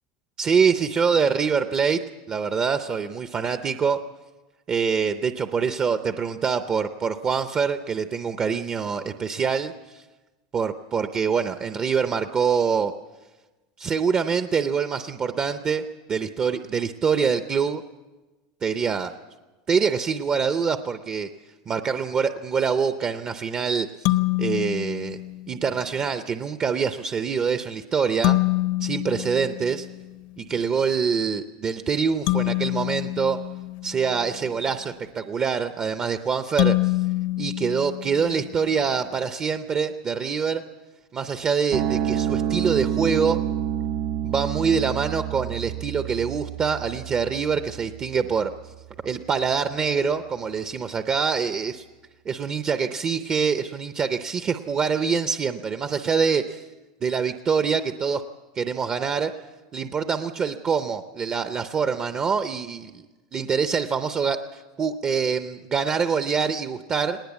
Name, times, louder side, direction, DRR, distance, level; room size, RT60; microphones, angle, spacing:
voice 1, 0.4-2.0 2.3-4.0 4.7-9.7 10.5-12.9 13.8-15.8 16.1-17.8 18.6-19.1 19.7-21.3 21.7-24.1 24.4-25.2 25.5-28.4 28.8-29.9 30.4-33.4 33.8-36.9 37.4-40.6 41.1-43.4 44.2-48.5 49.0-51.8 52.3-56.6 57.0-58.2 58.6-59.3 59.7-63.0 63.3-67.2, right 6 dB, 25° right, 9 dB, 0.6 m, -25 dB
sound 1, 24.0-25.7 28.2-30.3 32.3-34.4 36.6-38.6, left 19 dB, 55° left, 0.8 m, -26 dB
sound 2, 41.7-48.4, right 10 dB, 55° right, 1.4 m, -28 dB
19.5 x 19.0 x 8.2 m, 1.2 s
supercardioid pair, 150°, 4 cm